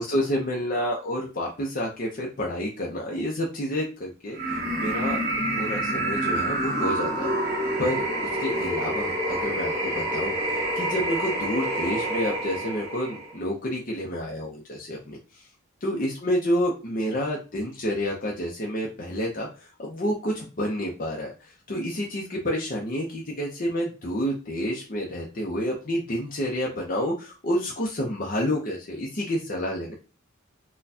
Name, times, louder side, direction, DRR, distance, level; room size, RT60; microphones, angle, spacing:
voice 1, 0.0-5.2 5.5-7.3 7.8-8.1 8.4-15.4 15.8-29.9, equal, 40° left, -2 dB, 0.6 m, -29 dB
sound 1, 4.3-13.4, right 1 dB, 40° right, 1.3 m, -27 dB
4.1 x 2.2 x 2.7 m, 0.33 s
head